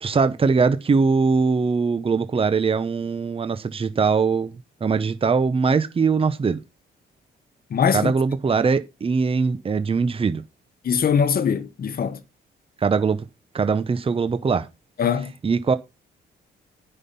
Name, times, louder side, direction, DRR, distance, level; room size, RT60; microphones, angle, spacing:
voice 1, 0.0-6.6 7.9-10.4 12.8-13.2 13.5-14.7 15.4-15.8, right 5 dB, 30° right, 0.8 m, -21 dB
voice 2, 7.7-8.1 10.8-12.2 15.0-15.3, left 7 dB, 50° left, 1.2 m, -21 dB
9.8 x 5.7 x 5.6 m
cardioid pair, 90°, 20 cm